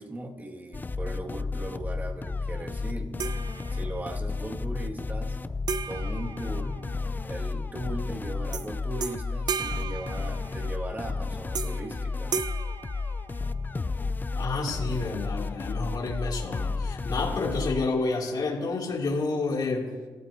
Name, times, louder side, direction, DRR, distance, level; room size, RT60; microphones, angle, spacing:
voice 1, 0.0-3.1 3.7-5.4 5.8-6.8 7.2-12.4, right 2 dB, 20° right, 1 dB, 2.0 m, -38 dB
sound 1, 0.7-17.9, left 3 dB, 25° left, 0.5 m, -32 dB
sound 2, 3.2-4.2 5.7-7.2 8.5-8.7 9.0-10.8 11.5-11.9 12.3-13.7, right 6 dB, 55° right, 0.8 m, -35 dB
voice 2, 14.4-19.9, left 3 dB, 55° left, -2 dB, 2.6 m, -29 dB
25.5 x 13.5 x 2.7 m, 1.4 s
cardioid pair, 80°, 8 cm